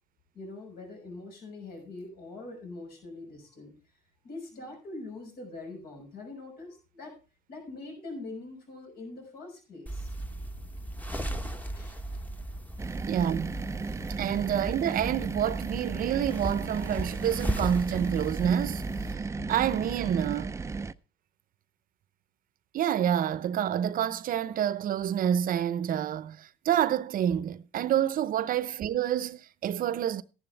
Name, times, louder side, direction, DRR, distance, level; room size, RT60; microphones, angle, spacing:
voice 1, 0.3-3.7 4.2-7.2 7.5-10.1 11.7-12.0, left 2 dB, 65° left, 6.1 m, -43 dB
sound 1, 9.9-19.1, right 1 dB, 10° left, 1.1 m, -37 dB
sound 2, 12.8-20.9, right 4 dB, 15° right, 0.5 m, -35 dB
voice 2, 13.1-13.6 14.2-18.9 19.5-20.6 22.7-30.2, right 10 dB, 55° right, 0.8 m, -28 dB
13.5 x 11.0 x 3.4 m
cardioid pair, 110°, 17 cm